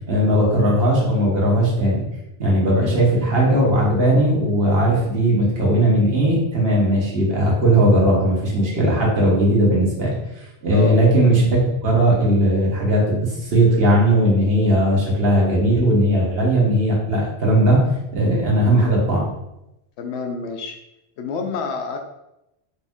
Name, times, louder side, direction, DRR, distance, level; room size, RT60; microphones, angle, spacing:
voice 1, 0.1-2.1 2.4-17.9 18.1-19.2, right 1 dB, 65° right, -4 dB, 1.3 m, -18 dB
voice 2, 2.6-3.0 10.7-11.0 20.0-20.8 21.2-22.0, left 4 dB, 90° left, 4 dB, 0.9 m, -28 dB
4.1 x 2.6 x 3.5 m, 0.88 s
omnidirectional pair, 1.1 m